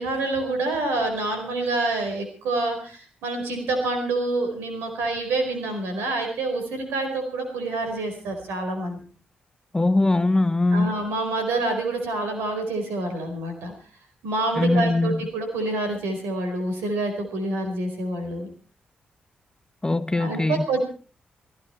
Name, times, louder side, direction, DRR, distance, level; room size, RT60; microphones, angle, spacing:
voice 1, 0.0-9.0 10.7-13.7 14.2-18.5 20.2-20.8, right 2 dB, 85° right, 4.6 m, -27 dB
voice 2, 9.7-10.9 14.5-15.3 19.8-20.7, left 2 dB, 20° left, 1.2 m, -21 dB
16.5 x 16.0 x 4.5 m
supercardioid pair, 45°, 4 cm